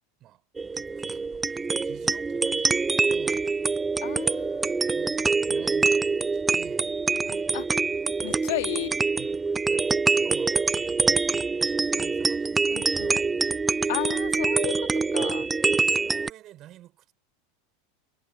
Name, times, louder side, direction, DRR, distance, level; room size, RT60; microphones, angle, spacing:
sound 1, 0.6-16.3, right 4 dB, 15° right, 0.3 m, -25 dB
voice 1, 0.7-3.5 4.9-7.0 9.2-12.9 15.4-17.1, right 14 dB, 45° right, 6.8 m, -50 dB
voice 2, 4.0-5.6 7.3-7.8 8.2-9.0 12.7-13.2 13.9-15.5, left 21 dB, 70° left, 2.9 m, -34 dB
hypercardioid pair, 95°, 0 cm